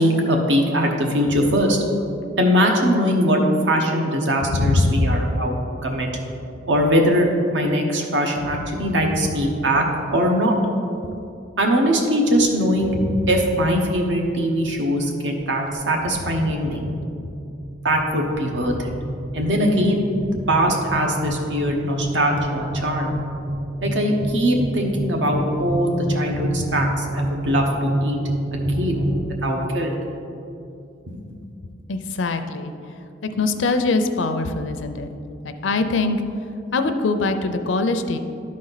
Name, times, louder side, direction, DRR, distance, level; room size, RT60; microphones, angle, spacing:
voice 1, 0.0-1.8 2.4-5.6 5.8-6.1 6.7-9.8 10.1-10.6 11.6-13.0 13.3-16.9 17.8-18.9 19.3-20.0 20.5-23.1 23.8-28.2 28.5-29.0 29.4-29.9, equal, 75° right, 2 dB, 1.0 m, -21 dB
voice 2, 4.5-5.3 13.1-13.2 16.4-16.5 28.7-29.0 31.9-32.7 33.4-35.1 35.4-36.2 36.7-38.2, left 3 dB, 85° left, 8 dB, 0.5 m, -22 dB
sound 1, 12.3-29.3, right 1 dB, 55° right, 1.5 m, -29 dB
12.0 x 4.2 x 4.0 m, 2.6 s
head